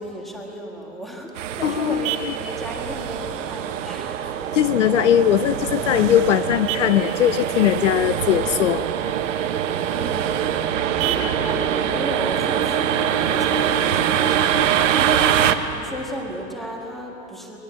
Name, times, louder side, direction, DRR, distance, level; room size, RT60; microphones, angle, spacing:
voice 1, 0.0-4.2 9.9-15.4 15.7-17.6, right 1 dB, ahead, -1 dB, 1.6 m, -34 dB
Vehicle horn car horn honking, 0.8-13.8, right 9 dB, 35° right, 1.8 m, -38 dB
sound 1, 1.4-15.5, right 9 dB, 60° right, 1.2 m, -23 dB
voice 2, 1.6-2.1 4.5-9.1, left 10 dB, 55° left, 13 dB, 0.7 m, -20 dB
23.5 x 20.5 x 7.6 m, 2.9 s
hypercardioid pair, 170°, 44 cm